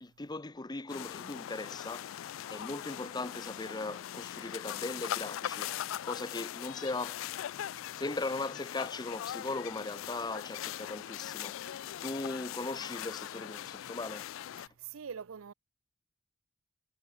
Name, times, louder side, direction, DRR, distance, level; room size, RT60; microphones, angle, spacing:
voice 1, 0.0-14.7, left 2 dB, 20° left, 0.8 m, -39 dB
sound 1, 0.9-14.7, left 11 dB, 70° left, 0.3 m, -41 dB
voice 2, 14.6-15.5, right 7 dB, 90° right, 0.5 m, -45 dB
head